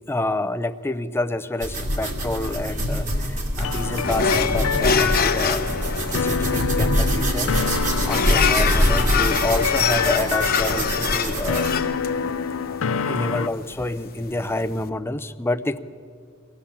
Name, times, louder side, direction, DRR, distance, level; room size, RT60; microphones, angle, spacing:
voice 1, 0.1-11.9 13.0-15.8, left 2 dB, 10° left, 10 dB, 0.5 m, -28 dB
sound 1, 1.6-11.8, equal, 35° right, 2.4 m, -25 dB
sound 2, 3.6-13.5, left 6 dB, 70° left, 0.5 m, -27 dB
sound 3, 4.0-14.9, left 6 dB, 45° left, 0.9 m, -26 dB
23.5 x 16.5 x 7.2 m, 2.2 s
head